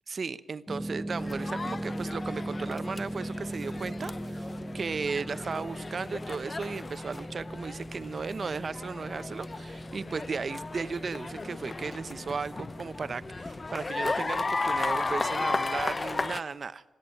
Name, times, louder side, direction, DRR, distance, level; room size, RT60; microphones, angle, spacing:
voice 1, 0.1-16.8, right 5 dB, 50° right, 15 dB, 0.8 m, -35 dB
sound 1, 0.7-13.9, right 1 dB, 10° right, 0.8 m, -40 dB
sound 2, 1.2-16.4, left 3 dB, 35° left, 0.8 m, -35 dB
29.0 x 10.5 x 9.2 m, 1.1 s
cardioid pair, 75°, 0 cm